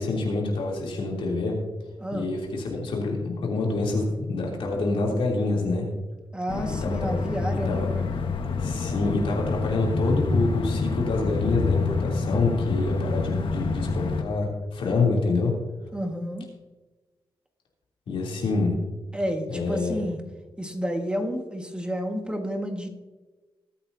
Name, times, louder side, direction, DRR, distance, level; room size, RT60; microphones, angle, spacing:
voice 1, 0.0-1.5 2.1-5.9 6.8-7.1 7.6-7.9 8.6-15.5 18.1-18.7 19.5-20.0, left 3 dB, 90° left, -2 dB, 3.2 m, -26 dB
voice 2, 6.3-8.2 15.9-16.5 19.1-20.2 20.6-22.9, equal, 10° right, 3 dB, 1.7 m, -30 dB
sound 1, 6.5-14.2, left 4 dB, 70° left, 1.3 m, -27 dB
20.5 x 8.9 x 2.8 m, 1.2 s
cardioid pair, 90°, 9 cm